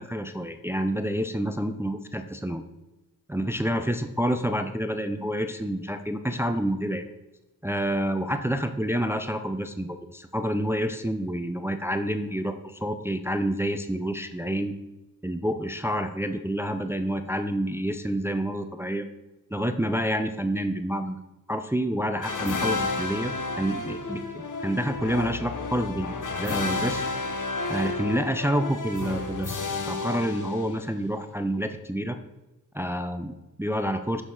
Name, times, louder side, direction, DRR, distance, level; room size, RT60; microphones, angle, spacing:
voice 1, 0.0-2.6 3.3-7.1 7.6-14.8 15.2-19.1 19.5-21.2 21.5-27.0 27.7-29.6 29.9-32.2 32.7-34.2, equal, 5° right, 8 dB, 0.5 m, -28 dB
sound 1, 22.2-31.1, left 3 dB, 55° left, 0.9 m, -31 dB
6.5 x 6.1 x 3.9 m, 1.0 s
cardioid pair, 55°, 36 cm